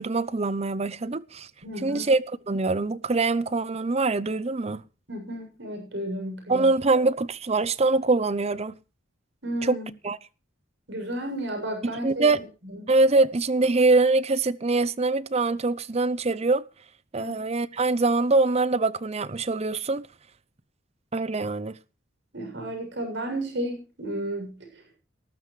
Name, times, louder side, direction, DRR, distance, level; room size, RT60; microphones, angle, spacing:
voice 1, 0.0-1.5 1.8-4.8 6.5-8.7 9.6-9.8 10.0-10.2 12.0-12.4 12.9-16.6 17.1-20.1 21.1-21.8, right 3 dB, 35° right, 0.6 m, -23 dB
voice 2, 1.6-2.1 5.1-6.7 9.4-9.9 10.9-12.2 12.6-12.8 17.2-17.4 22.3-24.7, right 1 dB, 65° right, 7.2 m, -33 dB
18.5 x 14.0 x 3.2 m
head